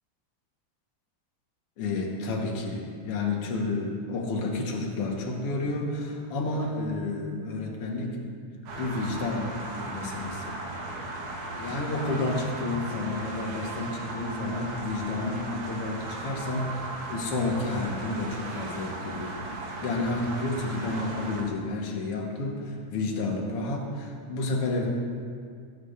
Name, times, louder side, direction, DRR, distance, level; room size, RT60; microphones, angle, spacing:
voice 1, 1.8-8.2 8.7-10.6 11.5-19.4 19.8-24.9, left 2 dB, 55° left, 0 dB, 2.0 m, -31 dB
sound 1, 8.7-21.4, right 2 dB, 70° right, 2.4 m, -37 dB
18.5 x 8.9 x 2.6 m, 2.2 s
omnidirectional pair, 3.4 m